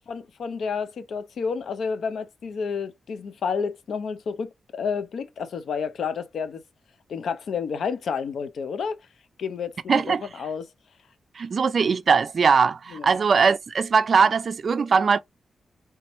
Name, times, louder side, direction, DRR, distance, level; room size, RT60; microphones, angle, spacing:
voice 1, 0.1-6.6 7.1-9.0 9.4-10.7 12.9-13.2, left 6 dB, 80° left, 0.5 m, -30 dB
voice 2, 9.9-10.3 11.4-15.2, right 5 dB, 55° right, 0.3 m, -20 dB
3.3 x 3.0 x 3.0 m
wide cardioid pair, 115°, 0 cm